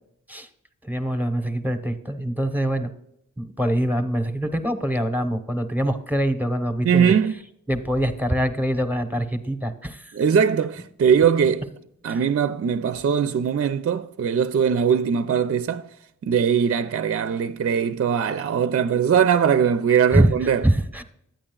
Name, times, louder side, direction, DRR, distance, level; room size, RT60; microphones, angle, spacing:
voice 1, 0.8-2.9 3.4-7.1 7.7-10.1 12.1-12.2 20.1-20.3 20.6-21.0, right 1 dB, 5° right, 0.9 m, -24 dB
voice 2, 6.8-7.4 10.1-11.7 12.0-15.8 16.2-20.7, right 7 dB, 45° right, 0.4 m, -21 dB
10.5 x 8.7 x 2.3 m
cardioid pair, 40°, 33 cm